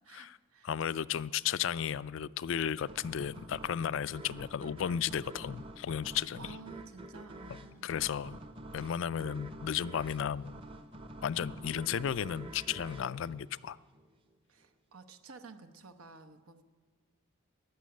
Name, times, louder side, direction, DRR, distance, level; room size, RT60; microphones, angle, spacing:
voice 1, 0.0-0.7 6.4-7.9 14.5-16.6, right 4 dB, 85° right, 9 dB, 0.9 m, -52 dB
voice 2, 0.6-6.4 7.8-8.4 8.7-10.6 11.2-13.8, left 8 dB, 60° left, 17 dB, 0.3 m, -34 dB
sound 1, 2.9-14.1, right 1 dB, 25° right, 0.7 m, -48 dB
14.0 x 9.6 x 9.4 m, 1.5 s
head